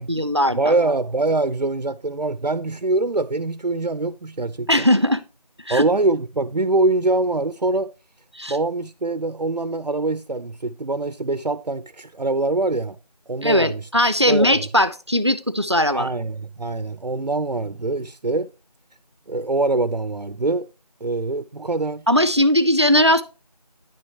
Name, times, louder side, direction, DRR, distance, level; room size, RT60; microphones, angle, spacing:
voice 1, 0.0-0.6 4.7-5.2 5.7-5.8 8.3-8.5 13.4-16.1 22.1-23.2, left 1 dB, 40° right, 0.6 m, -19 dB
voice 2, 0.5-4.9 5.7-7.9 8.5-13.0 13.3-13.9 14.3-14.7 15.9-18.5 19.3-20.7 21.0-22.1, right 2 dB, 85° right, 0.7 m, -24 dB
10.0 x 6.5 x 2.8 m
figure-of-eight pair, 180°, 21 cm